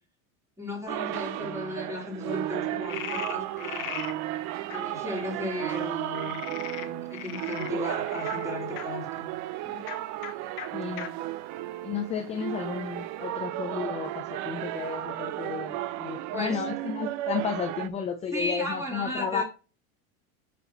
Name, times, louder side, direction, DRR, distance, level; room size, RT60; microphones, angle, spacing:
voice 1, 0.6-3.9 4.7-6.4 6.8-9.8 16.3-16.7 18.3-19.4, left 1 dB, 5° right, 3.4 m, -35 dB
sound 1, 0.9-17.9, right 14 dB, 40° right, 0.5 m, -34 dB
Frog, 2.9-4.1 4.7-4.8 6.1-8.8 9.8-10.0 10.2-10.3 10.6-10.7 11.0-11.1 11.7-12.4, left 12 dB, 45° left, 1.1 m, -38 dB
voice 2, 10.7-11.2 11.8-19.4, left 7 dB, 15° left, 0.4 m, -33 dB
8.0 x 5.9 x 2.9 m
supercardioid pair, 135°, 44 cm